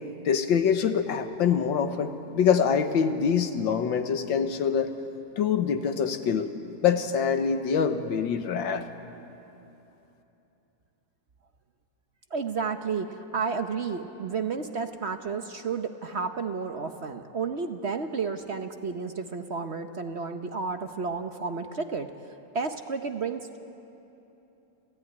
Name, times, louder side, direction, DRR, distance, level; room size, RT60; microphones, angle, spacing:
voice 1, 0.3-4.9 5.4-6.5 6.8-8.9, left 7 dB, 80° left, 8 dB, 1.9 m, -25 dB
voice 2, 12.3-22.1 22.5-23.6, right 5 dB, 50° right, 7 dB, 0.9 m, -31 dB
29.5 x 15.0 x 9.6 m, 3.0 s
omnidirectional pair, 2.1 m